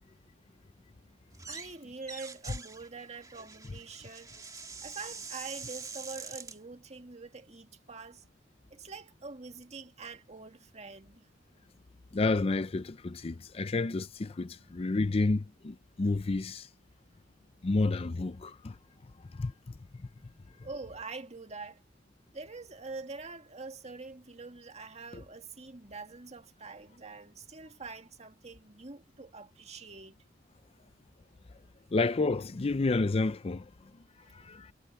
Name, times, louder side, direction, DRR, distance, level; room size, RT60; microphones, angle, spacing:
sound 1, 1.3-1.7 2.0-6.6, right 5 dB, 20° right, 1.9 m, -44 dB
voice 1, 1.5-4.3 4.8-8.2 8.7-11.3 20.6-21.8 22.3-30.2 34.2-34.6, right 4 dB, 35° right, 2.0 m, -45 dB
voice 2, 12.1-16.7 17.6-18.8 19.3-19.5 31.9-33.7 34.3-34.7, left 3 dB, 30° left, 0.5 m, -30 dB
head